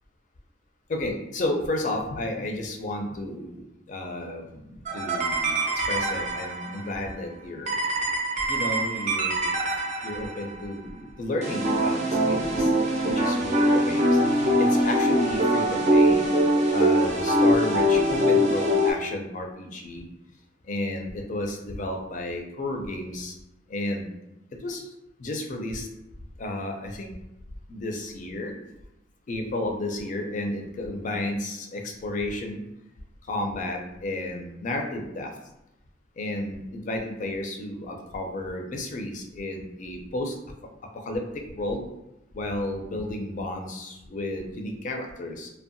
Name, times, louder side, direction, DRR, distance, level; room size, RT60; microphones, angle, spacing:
voice 1, 0.9-5.6 5.9-7.8 8.5-9.6 10.0-16.2 16.7-20.1 20.6-23.4 23.7-24.1 24.6-24.8 25.2-25.9 26.4-27.1 27.7-28.5 29.3-32.6 33.3-35.3 36.2-40.4 41.1-41.2 41.5-41.8 42.3-45.5, left 1 dB, 45° left, 3 dB, 0.4 m, -32 dB
sound 1, 4.9-6.8 7.7-10.5 11.4-18.9, equal, 40° right, 0.5 m, -23 dB
2.6 x 2.1 x 2.5 m, 0.89 s
head